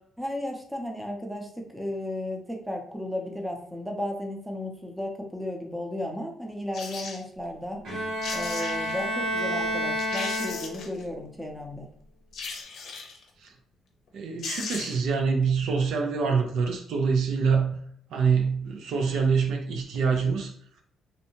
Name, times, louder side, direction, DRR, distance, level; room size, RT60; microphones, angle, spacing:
voice 1, 0.2-7.8 8.3-11.9, left 1 dB, 5° right, 1 dB, 0.6 m, -34 dB
sound 1, 6.7-7.2 7.9-8.0 8.2-9.0 9.6-9.7 10.0-11.0 12.3-13.2 14.1-14.2 14.4-15.1 15.4-15.5, left 4 dB, 70° left, 0.6 m, -37 dB
Bowed string instrument, 7.9-11.0, equal, 65° right, 1.4 m, -30 dB
voice 2, 14.1-17.8 18.1-20.5, right 5 dB, 80° right, 2 dB, 0.5 m, -25 dB
2.7 x 2.1 x 2.8 m, 0.64 s
cardioid pair, 90°, 0 cm